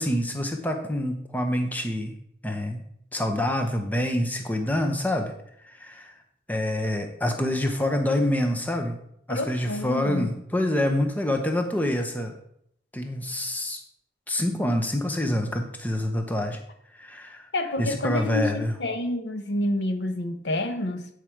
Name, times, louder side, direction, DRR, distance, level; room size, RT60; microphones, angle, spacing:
voice 1, 0.0-2.1 2.4-2.8 3.1-5.3 5.6-6.1 6.5-8.9 9.3-12.3 12.9-13.8 14.3-16.6 16.9-17.5 17.8-18.7, left 1 dB, 10° left, 4 dB, 0.7 m, -26 dB
voice 2, 9.3-10.3 17.5-21.1, left 1 dB, 80° left, 7 dB, 0.9 m, -28 dB
8.8 x 5.0 x 4.5 m, 0.72 s
head